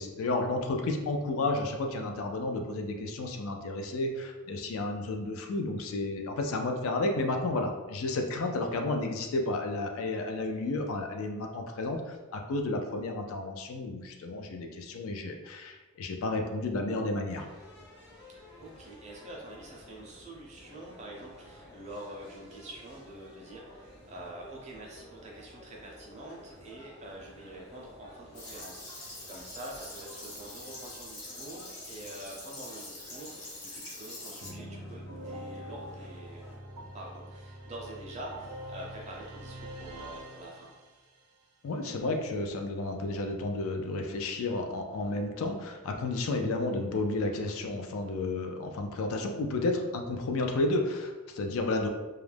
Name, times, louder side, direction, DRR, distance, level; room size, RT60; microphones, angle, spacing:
voice 1, 0.0-17.5 41.6-51.9, left 2 dB, 70° left, 4 dB, 0.3 m, -32 dB
sound 1, 17.3-36.6, left 1 dB, 45° left, 0.8 m, -53 dB
voice 2, 18.6-36.5 36.9-40.7, right 1 dB, 30° right, -3 dB, 0.5 m, -46 dB
sound 2, 28.3-34.5, left 2 dB, 90° left, 1.1 m, -44 dB
sound 3, 34.4-41.2, equal, 90° right, 0.5 m, -44 dB
2.3 x 2.0 x 3.2 m, 1.2 s
head